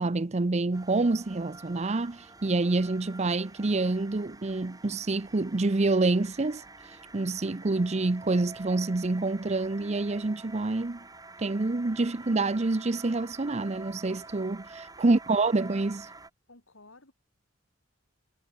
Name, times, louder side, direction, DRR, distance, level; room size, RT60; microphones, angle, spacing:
voice 1, 0.0-6.6 7.1-11.0 11.4-16.1, right 3 dB, 35° right, 0.7 m, -27 dB
sound 1, 0.7-16.3, right 3 dB, 20° right, 6.4 m, -48 dB
voice 2, 16.5-17.1, left 2 dB, 80° left, 7.0 m, -55 dB
head